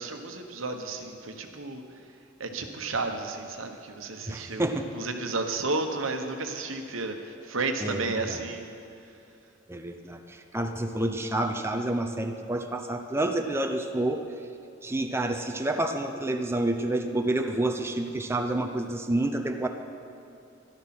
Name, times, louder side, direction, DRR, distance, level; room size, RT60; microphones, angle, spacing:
voice 1, 0.0-1.8 2.4-8.6, right 3 dB, 85° right, 5 dB, 1.2 m, -32 dB
voice 2, 4.3-4.9 7.8-8.4 9.7-14.2 14.8-19.7, right 1 dB, 15° right, 4 dB, 0.7 m, -29 dB
13.5 x 12.0 x 6.1 m, 2.7 s
head